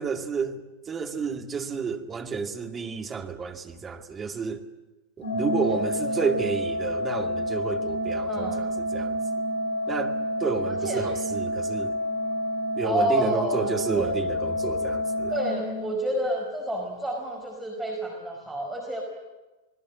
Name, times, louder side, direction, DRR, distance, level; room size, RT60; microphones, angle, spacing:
voice 1, 0.0-4.6 5.2-9.2 9.9-11.9 12.8-15.3, right 5 dB, 20° right, 2.2 m, -31 dB
Organ, 5.2-16.2, equal, 90° right, 7.5 m, -29 dB
voice 2, 5.6-6.3 8.3-8.6 10.7-11.0 12.8-14.2 15.3-19.0, right 1 dB, 5° right, 4.9 m, -30 dB
27.5 x 20.5 x 7.5 m
figure-of-eight pair, 90°, 0 cm